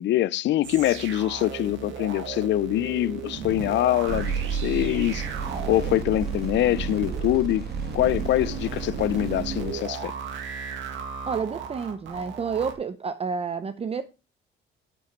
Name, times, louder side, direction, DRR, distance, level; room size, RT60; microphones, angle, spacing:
voice 1, 0.0-5.3 5.7-10.1, left 14 dB, 65° left, 0.5 m, -24 dB
sound 1, 0.6-12.7, right 6 dB, 70° right, 2.0 m, -36 dB
Insect, 2.5-10.7, left 1 dB, ahead, 4.1 m, -52 dB
sound 2, 4.1-9.7, right 6 dB, 55° right, 2.3 m, -32 dB
voice 2, 11.3-14.0, right 5 dB, 30° right, 0.7 m, -29 dB
8.7 x 7.5 x 4.5 m
cardioid pair, 105°, 20 cm